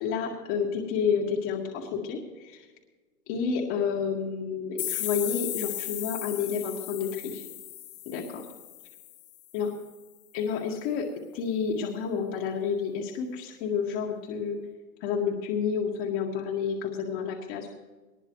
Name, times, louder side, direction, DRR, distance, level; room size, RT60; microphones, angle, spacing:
voice 1, 0.0-2.7 3.3-7.4 8.1-8.5 9.5-9.7 10.3-11.1 11.3-14.6 15.0-17.7, left 6 dB, 40° left, -2 dB, 2.0 m, -30 dB
sound 1, 4.8-9.4, left 13 dB, 65° left, 1.4 m, -36 dB
20.5 x 20.0 x 3.2 m, 1.3 s
hypercardioid pair, 135°, 46 cm